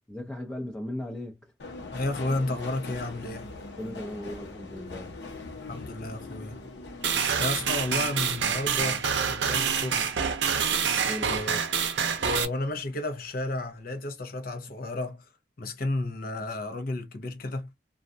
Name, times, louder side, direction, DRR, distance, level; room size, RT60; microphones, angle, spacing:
voice 1, 0.1-1.5 3.7-5.2 11.0-11.5, left 1 dB, 5° left, 0.6 m, -37 dB
Subway metro underground, 1.6-12.3 12.7-13.4 13.7-13.8, left 3 dB, 85° left, 0.8 m, -43 dB
voice 2, 1.9-3.5 5.6-6.6 7.2-10.2 11.2-11.6 12.2-15.3 15.6-17.7, left 2 dB, 55° left, 0.8 m, -32 dB
sound 1, 7.0-12.5, right 7 dB, 80° right, 0.5 m, -27 dB
2.5 x 2.3 x 2.6 m
head